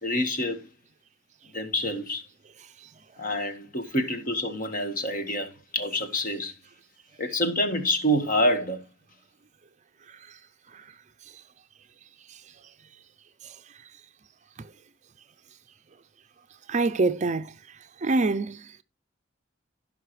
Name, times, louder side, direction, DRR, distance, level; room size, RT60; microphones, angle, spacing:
voice 1, 0.0-0.6 1.5-2.2 3.2-6.5 7.2-8.8, equal, 45° left, 1.7 m, -27 dB
voice 2, 16.7-17.5 18.0-18.6, right 3 dB, 40° right, 0.5 m, -24 dB
16.0 x 5.7 x 3.2 m
head